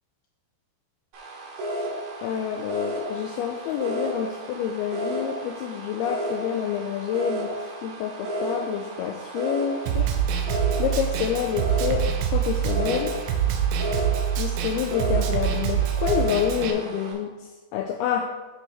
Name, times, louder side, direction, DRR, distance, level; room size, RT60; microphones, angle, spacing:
sound 1, 1.1-17.1, right 1 dB, 70° right, 4.1 m, -33 dB
voice 1, 2.2-7.5 7.8-10.1 10.8-12.0 12.3-13.1 14.4-17.3 17.7-18.3, left 9 dB, 85° left, 3 dB, 2.3 m, -28 dB
Snare drum, 9.9-16.7, right 9 dB, 85° right, 2.9 m, -25 dB
9.8 x 6.2 x 3.4 m, 1.2 s
omnidirectional pair, 4.9 m